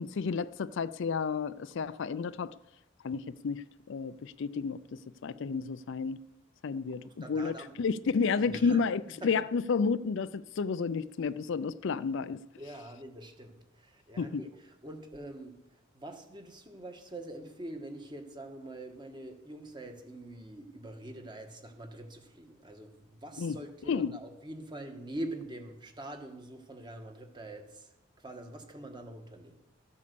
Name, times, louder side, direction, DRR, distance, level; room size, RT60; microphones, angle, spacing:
voice 1, 0.0-2.5 3.0-4.8 5.2-6.2 6.6-12.4 14.2-14.4 23.4-23.6 23.9-24.1, left 5 dB, 65° left, 0.4 m, -31 dB
voice 2, 7.0-7.8 8.4-9.5 12.6-29.6, right 1 dB, 20° right, 1.4 m, -44 dB
14.0 x 8.4 x 6.8 m
head